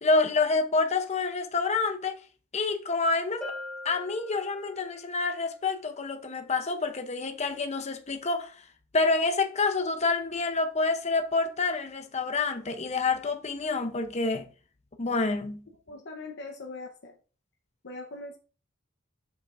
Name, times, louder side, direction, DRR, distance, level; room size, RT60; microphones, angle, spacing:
voice 1, 0.0-2.2 2.5-3.4 3.8-8.5 8.9-14.4 15.0-15.6, left 3 dB, 35° left, 0.7 m, -27 dB
Bell, 3.4-5.0, left 2 dB, 5° left, 2.7 m, -40 dB
voice 2, 15.9-17.1 17.8-18.4, left 3 dB, 60° left, 0.9 m, -41 dB
8.0 x 5.7 x 2.6 m
head